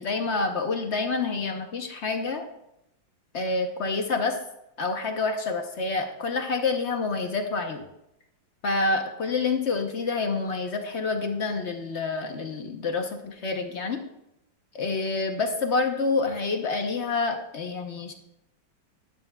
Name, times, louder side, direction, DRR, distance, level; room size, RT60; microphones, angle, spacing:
voice 1, 0.0-2.4 3.3-4.4 4.8-7.8 8.6-14.0 14.7-18.1, left 3 dB, 55° left, 4 dB, 0.7 m, -28 dB
12.5 x 10.5 x 2.2 m, 0.85 s
omnidirectional pair, 2.1 m